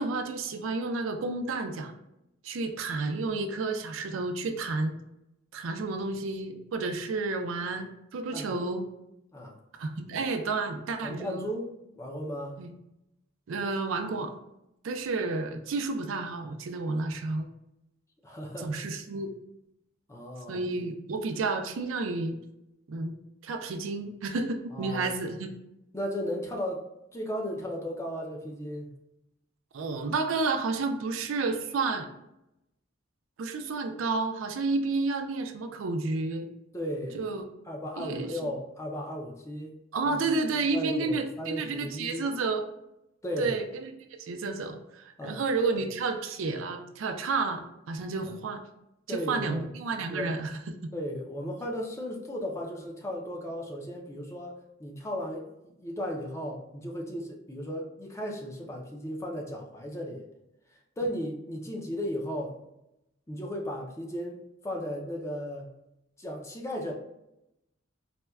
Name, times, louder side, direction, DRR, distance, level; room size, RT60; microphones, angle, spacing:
voice 1, 0.0-1.9 2.4-4.9 5.5-8.8 9.8-11.5 12.6-12.7 13.5-14.3 14.8-17.5 18.6-19.3 20.5-22.4 22.9-23.1 23.4-25.5 29.7-32.1 33.4-36.5 37.1-37.4 38.0-38.3 39.9-42.6 43.4-43.9 44.2-48.6 49.1-50.9, right 3 dB, 80° right, 6 dB, 0.4 m, -31 dB
voice 2, 8.3-8.7 9.3-9.6 11.0-11.7 12.0-12.6 18.2-18.8 20.1-20.6 24.7-25.1 25.9-29.0 36.7-37.2 37.7-39.7 40.1-40.3 40.7-42.2 43.2-43.6 45.2-45.4 48.2-48.3 49.1-49.6 50.1-50.3 50.9-60.2 61.0-62.5 63.3-65.7 66.2-66.9, equal, 15° left, 0 dB, 0.4 m, -35 dB
4.2 x 2.1 x 2.3 m, 0.87 s
head